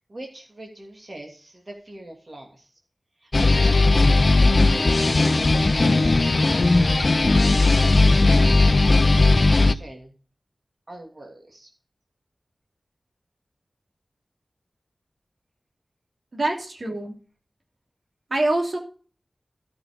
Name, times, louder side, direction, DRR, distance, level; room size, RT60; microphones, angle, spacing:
voice 1, 0.1-2.7 3.2-3.8 4.3-7.4 7.8-10.1 10.9-11.7, right 1 dB, 40° right, 1 dB, 2.7 m, -41 dB
sound 1, 3.3-9.7, left 2 dB, 50° left, 0.6 m, -17 dB
voice 2, 16.3-17.1 18.3-18.8, right 2 dB, 65° right, 1 dB, 3.1 m, -25 dB
14.0 x 6.3 x 5.1 m, 0.40 s
wide cardioid pair, 85°, 0 cm